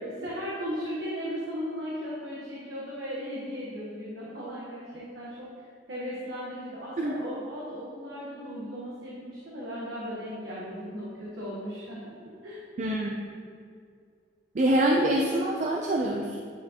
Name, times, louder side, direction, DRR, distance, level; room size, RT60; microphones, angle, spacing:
voice 1, 0.0-12.1 12.4-12.6, equal, 70° right, -7 dB, 1.2 m, -37 dB
voice 2, 12.8-13.1 14.5-16.4, right 1 dB, 40° right, 0 dB, 0.4 m, -25 dB
8.8 x 4.6 x 2.9 m, 2.2 s
head